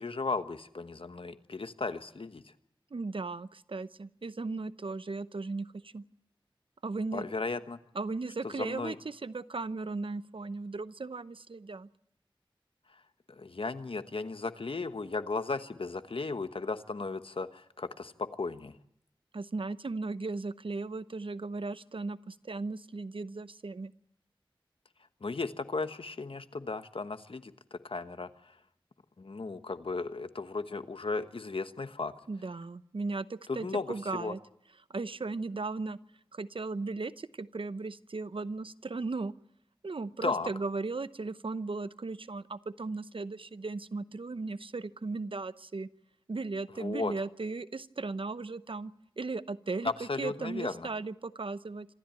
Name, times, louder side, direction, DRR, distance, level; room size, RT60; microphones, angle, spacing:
voice 1, 0.0-2.5 7.1-7.8 8.4-8.9 12.9-13.0 13.3-18.8 25.2-28.6 29.2-32.1 33.5-34.3 40.2-40.5 46.8-47.1 49.8-50.9, left 3 dB, 80° left, 11 dB, 1.2 m, -35 dB
voice 2, 2.9-6.0 6.8-7.2 7.9-11.9 19.3-23.9 32.3-34.4 34.9-36.0 36.3-39.3 39.8-45.9 46.3-51.9, right 3 dB, 75° right, 15 dB, 0.8 m, -36 dB
26.5 x 13.5 x 9.0 m, 0.73 s
wide cardioid pair, 50°, 9 cm